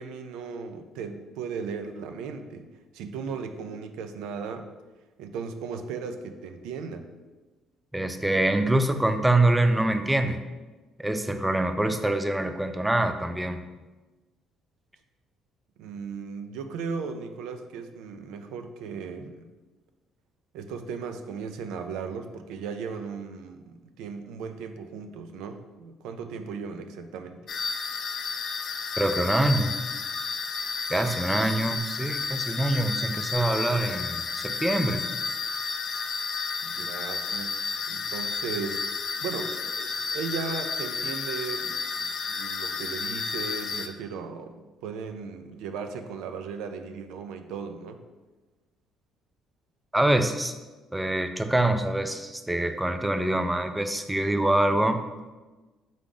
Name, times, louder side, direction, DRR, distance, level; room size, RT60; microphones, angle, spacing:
voice 1, 0.0-2.7 2.9-4.7 5.2-7.1 15.8-19.5 20.5-27.5 36.6-37.6 37.9-38.8 39.2-48.0, right 5 dB, 85° right, 7 dB, 0.3 m, -36 dB
voice 2, 7.9-10.4 11.0-13.6 29.0-29.8 30.9-35.0 49.9-50.5 50.9-55.0, right 1 dB, 10° right, 7 dB, 0.4 m, -25 dB
sound 1, 27.5-43.9, left 5 dB, 55° left, 0.4 m, -32 dB
3.7 x 3.5 x 3.8 m, 1.2 s
supercardioid pair, 80°, 0 cm